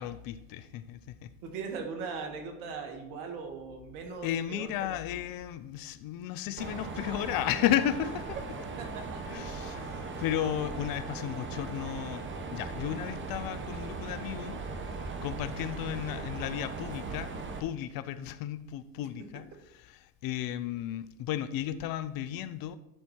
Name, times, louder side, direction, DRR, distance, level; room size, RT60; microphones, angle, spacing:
voice 1, 0.0-1.3 4.2-8.4 9.3-14.6 15.2-17.3 17.6-19.5 19.8-22.8, left 11 dB, 50° left, 14 dB, 0.6 m, -34 dB
voice 2, 1.4-5.0 8.8-9.2, right 5 dB, 70° right, 3 dB, 1.9 m, -39 dB
Mechanisms, 6.6-17.6, right 4 dB, 25° right, 1.1 m, -38 dB
11.5 x 4.2 x 4.5 m, 0.91 s
supercardioid pair, 90°, 43 cm